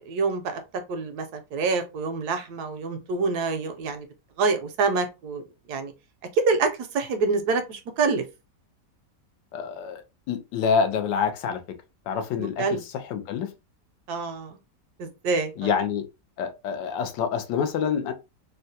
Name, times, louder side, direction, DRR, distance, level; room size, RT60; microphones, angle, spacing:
voice 1, 0.1-0.6 0.9-4.1 4.4-5.9 6.3-8.2 12.4-12.8 14.1-14.6 15.0-15.7, right 4 dB, 75° right, 1.1 m, -26 dB
voice 2, 9.5-11.6 12.1-13.5 15.6-16.0 16.4-18.1, left 6 dB, 85° left, 1.3 m, -27 dB
3.6 x 2.2 x 2.7 m
omnidirectional pair, 1.9 m